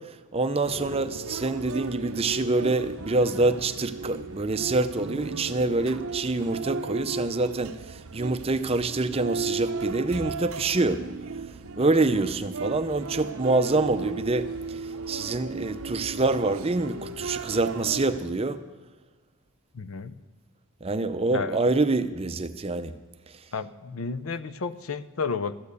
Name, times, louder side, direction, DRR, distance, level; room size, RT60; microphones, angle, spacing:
voice 1, 0.3-11.0 11.8-14.5 15.1-18.6 20.8-22.9, right 3 dB, 25° right, 10 dB, 0.5 m, -26 dB
sound 1, 0.6-18.2, right 4 dB, 70° right, 0.6 m, -36 dB
voice 2, 19.7-20.1 21.3-21.6 23.5-25.6, left 5 dB, 70° left, 12 dB, 0.6 m, -32 dB
13.5 x 8.8 x 8.3 m, 1.3 s
head